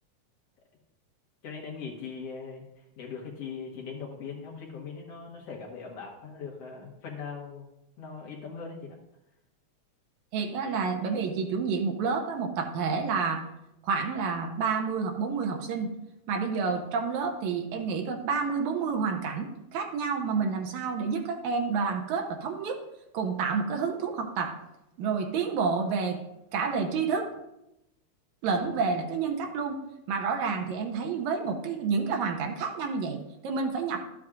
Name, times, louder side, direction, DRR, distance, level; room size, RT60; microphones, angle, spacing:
voice 1, 1.4-2.6 3.0-7.7 8.0-9.0, left 5 dB, 60° left, -1 dB, 2.2 m, -40 dB
voice 2, 10.3-13.4 13.8-15.9 16.3-22.8 23.1-24.6 25.0-26.2 26.5-27.3 28.4-29.8 30.1-34.0, right 5 dB, 80° right, 3 dB, 2.2 m, -29 dB
12.5 x 7.6 x 2.4 m, 0.89 s
omnidirectional pair, 3.4 m